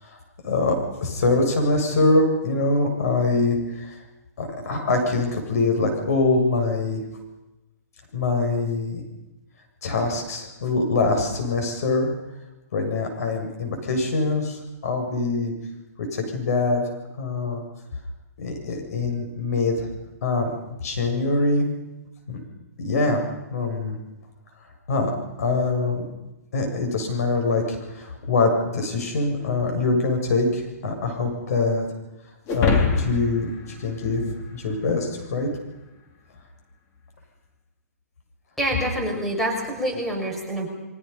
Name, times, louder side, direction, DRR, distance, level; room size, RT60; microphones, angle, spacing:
voice 1, 0.4-4.0 4.4-7.0 8.1-9.0 9.8-12.1 12.7-15.5 16.0-16.8 17.2-17.6 18.4-19.9 20.2-20.5 20.8-21.7 22.3-22.4 22.8-23.2 23.5-24.0 24.9-25.1 25.4-26.1 26.5-31.9 32.5-33.5 33.8-34.2 34.5-35.5, left 3 dB, 70° left, 4 dB, 7.6 m, -23 dB
sound 1, 32.5-35.0, left 5 dB, 35° left, 3.9 m, -25 dB
voice 2, 38.6-40.7, equal, ahead, -1 dB, 5.9 m, -26 dB
28.5 x 23.5 x 5.7 m, 0.99 s
hypercardioid pair, 140°, 9 cm